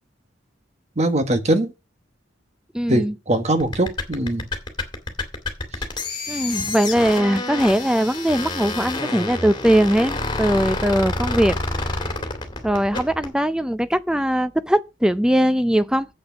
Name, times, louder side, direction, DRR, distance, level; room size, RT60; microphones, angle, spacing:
voice 1, 1.0-1.7 2.9-4.5, right 1 dB, 35° right, 1.3 m, -21 dB
voice 2, 2.7-3.1 6.3-11.6 12.6-16.1, equal, 5° right, 0.5 m, -20 dB
sound 1, 3.6-13.3, left 2 dB, 25° left, 2.2 m, -28 dB
7.9 x 6.6 x 6.2 m
head